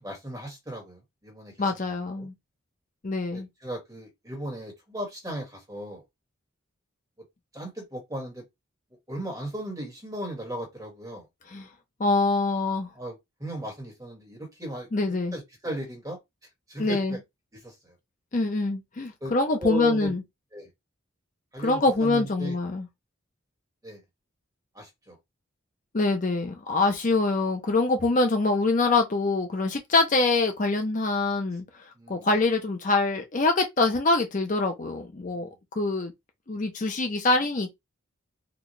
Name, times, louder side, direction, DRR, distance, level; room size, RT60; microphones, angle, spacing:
voice 1, 0.0-1.6 2.2-2.3 3.3-6.0 7.5-8.4 9.1-11.3 12.9-16.2 16.7-17.2 17.5-17.9 19.2-20.1 20.5-20.7 21.5-22.5 23.8-24.0 24.7-25.2 32.0-32.4 35.4-35.5, right 1 dB, 15° right, 1.4 m, -36 dB
voice 2, 1.6-2.3 3.0-3.5 11.5-11.7 12.0-12.9 14.9-15.4 16.8-17.2 18.3-20.2 21.6-22.9 25.9-35.5 35.8-36.1 36.5-37.7, left 3 dB, 40° left, 0.6 m, -25 dB
3.9 x 2.3 x 3.1 m
head